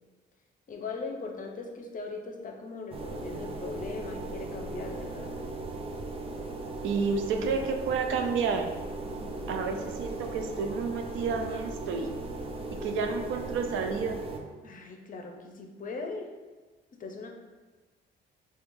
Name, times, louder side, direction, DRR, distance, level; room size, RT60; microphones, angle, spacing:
voice 1, 0.7-5.3 9.0-9.6 14.6-16.3 17.0-17.3, left 3 dB, 45° left, 2 dB, 0.5 m, -39 dB
sound 1, 2.9-14.4, right 2 dB, 30° right, 0.5 m, -38 dB
voice 2, 6.8-8.7 9.5-12.2 12.8-14.2, right 5 dB, 80° right, 4 dB, 0.5 m, -30 dB
4.5 x 2.3 x 2.6 m, 1.3 s
cardioid pair, 90°, 20 cm